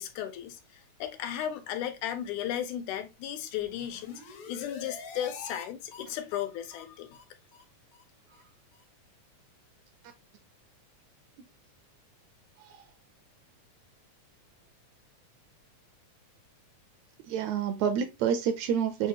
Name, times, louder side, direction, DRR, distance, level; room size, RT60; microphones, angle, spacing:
voice 1, 0.0-7.2, left 10 dB, 80° left, 2.1 m, -35 dB
sound 1, 3.6-5.7 5.9-6.0 6.3-6.4 6.7-6.8 7.1-7.2 7.5-7.6 7.9-8.0 8.3-8.4 8.7-8.8, left 4 dB, 65° left, 1.5 m, -45 dB
voice 2, 17.3-19.1, right 8 dB, 80° right, 1.6 m, -28 dB
6.7 x 2.4 x 2.8 m
omnidirectional pair, 3.4 m